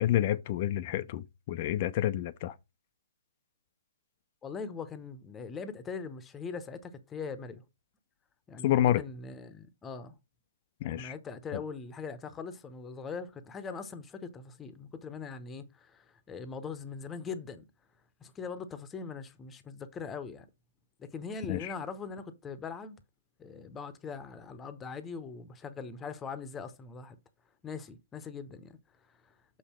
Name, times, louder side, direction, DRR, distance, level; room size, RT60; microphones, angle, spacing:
voice 1, 0.0-2.6 8.6-9.0 10.8-11.1 11.5-11.6 21.5-21.7, left 12 dB, 40° left, 0.5 m, -28 dB
voice 2, 4.4-7.6 8.5-10.1 10.8-17.7 18.2-20.5 21.0-23.0 23.4-27.2 27.6-28.8, left 5 dB, 15° left, 0.9 m, -41 dB
6.5 x 5.5 x 4.3 m
figure-of-eight pair, 130°, 0 cm